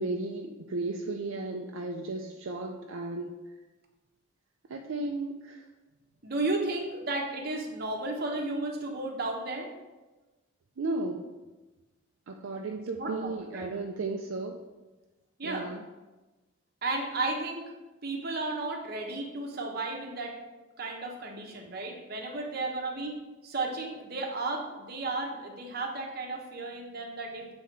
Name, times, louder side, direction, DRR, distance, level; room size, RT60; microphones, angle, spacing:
voice 1, 0.0-3.4 4.7-5.6 10.8-11.3 12.3-14.6 15.4-15.8, right 2 dB, 70° right, 2 dB, 0.5 m, -34 dB
voice 2, 6.2-9.7 13.0-13.7 15.4-15.7 16.8-17.7 18.0-20.4 20.8-23.1 23.4-27.5, right 2 dB, 50° right, 1 dB, 0.9 m, -33 dB
7.4 x 3.5 x 4.5 m, 1.2 s
head